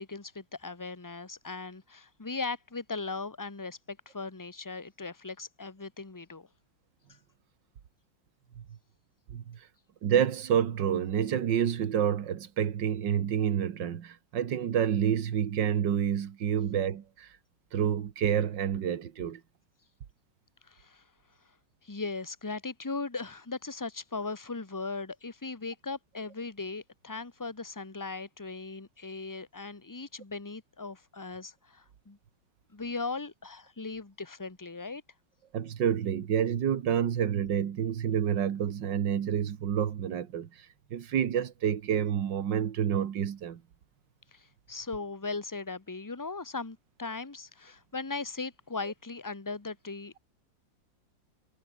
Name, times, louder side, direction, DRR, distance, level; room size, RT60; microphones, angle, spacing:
voice 1, 0.0-6.5 20.7-21.0 21.8-32.2 32.7-35.0 44.3-50.2, left 3 dB, 15° left, 0.8 m, -38 dB
voice 2, 10.0-17.3 17.7-19.4 35.5-43.6, right 9 dB, 70° right, 2.0 m, -28 dB
omnidirectional pair, 2.1 m